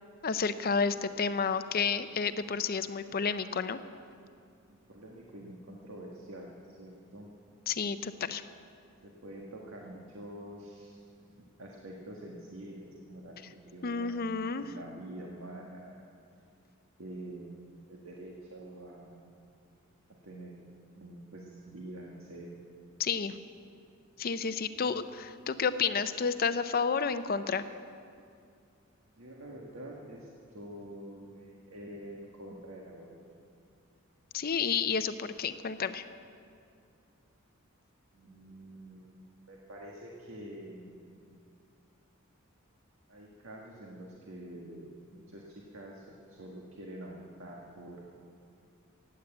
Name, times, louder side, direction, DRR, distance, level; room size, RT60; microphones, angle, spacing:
voice 1, 0.2-3.8 7.7-8.4 13.8-14.7 23.0-23.3 24.2-27.6 34.3-36.0, left 5 dB, 45° left, 11 dB, 0.6 m, -31 dB
voice 2, 4.7-7.3 9.0-11.0 11.6-16.1 17.0-19.6 20.2-20.6 20.9-22.5 24.7-25.1 29.1-33.1 38.1-39.1 39.5-41.2 43.1-48.0, right 1 dB, 75° right, -1 dB, 1.7 m, -47 dB
16.5 x 9.5 x 7.9 m, 2.4 s
head